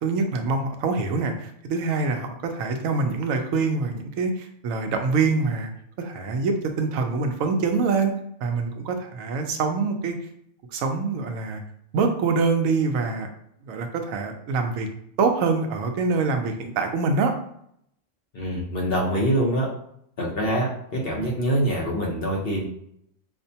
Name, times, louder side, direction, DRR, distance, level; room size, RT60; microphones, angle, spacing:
voice 1, 0.0-5.7 6.0-8.1 8.4-10.2 10.7-11.6 11.9-13.3 13.6-14.9 15.2-17.3, right 4 dB, 85° right, 5 dB, 1.0 m, -25 dB
voice 2, 18.3-19.7 20.2-22.6, right 1 dB, 50° left, -3 dB, 1.0 m, -24 dB
5.1 x 2.1 x 2.7 m, 0.71 s
omnidirectional pair, 1.4 m